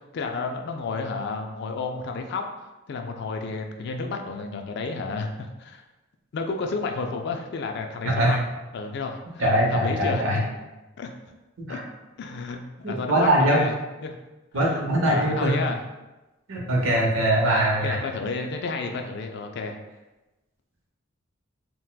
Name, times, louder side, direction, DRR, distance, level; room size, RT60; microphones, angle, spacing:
voice 1, 0.1-5.8 6.3-8.5 8.7-10.2 11.0-11.2 11.7-11.8 12.2-13.8 14.0-14.2 14.6-15.8 17.8-19.8, left 4 dB, 55° left, 4 dB, 0.3 m, -31 dB
voice 2, 8.0-8.4 9.4-10.4 11.6-11.8 12.8-13.6 14.5-15.5 16.5-18.0, right 1 dB, 80° right, -2 dB, 0.8 m, -22 dB
4.0 x 2.2 x 2.2 m, 1.1 s
head